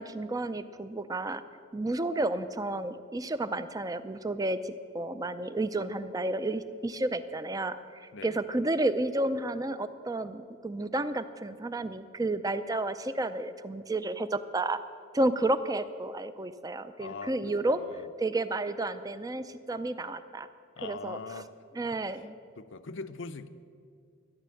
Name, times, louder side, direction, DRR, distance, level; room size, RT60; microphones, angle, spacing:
voice 1, 0.0-1.4 1.7-14.8 15.1-17.8 18.2-20.5 20.8-21.4 21.7-22.3, right 2 dB, 15° right, 0.5 m, -31 dB
voice 2, 17.0-18.1 20.8-21.5 22.6-23.5, left 4 dB, 65° left, 0.6 m, -41 dB
14.0 x 10.0 x 7.7 m
head